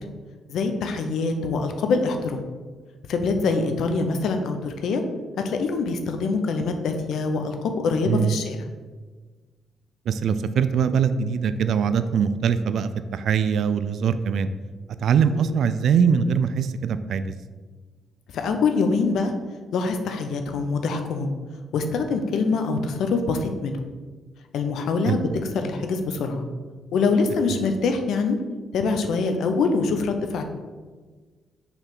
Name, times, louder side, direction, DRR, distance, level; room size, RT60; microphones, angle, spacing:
voice 1, 0.5-2.4 3.1-5.0 5.4-8.6 15.3-15.6 18.3-19.3 19.7-21.3 21.7-23.8 24.5-25.3 25.5-26.4 26.9-28.4 28.7-30.4, left 4 dB, 75° left, 6 dB, 0.7 m, -24 dB
voice 2, 8.1-8.4 10.1-14.5 15.0-17.3 25.1-25.2, right 7 dB, 65° right, 11 dB, 0.4 m, -22 dB
5.9 x 3.4 x 5.9 m, 1.4 s
cardioid pair, 90°, 0 cm